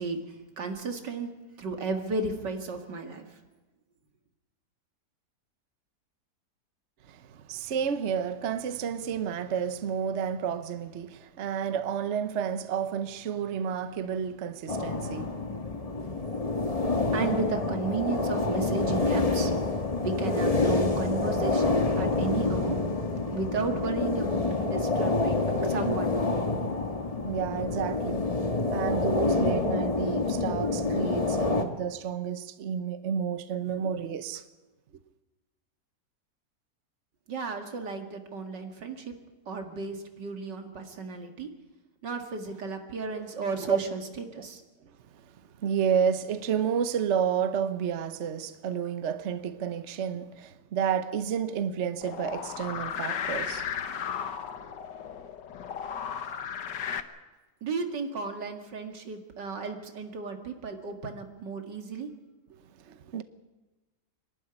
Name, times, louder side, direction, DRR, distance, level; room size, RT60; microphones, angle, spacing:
voice 1, 0.0-3.2 16.6-16.7 17.1-19.5 20.0-22.8 23.3-26.2 37.3-39.1 39.5-41.5 42.0-44.0 44.3-44.6 57.6-62.1, right 4 dB, 85° right, 2.7 m, -34 dB
voice 2, 7.1-15.4 15.7-17.0 27.2-28.3 28.7-34.4 43.1-43.2 43.7-43.8 44.4-44.5 45.6-53.7 62.8-63.2, right 7 dB, 50° right, 1.1 m, -31 dB
sound 1, 14.7-31.6, left 3 dB, 20° left, 1.5 m, -27 dB
sound 2, 52.0-57.0, left 8 dB, 85° left, 1.8 m, -35 dB
26.0 x 12.5 x 9.9 m
omnidirectional pair, 1.8 m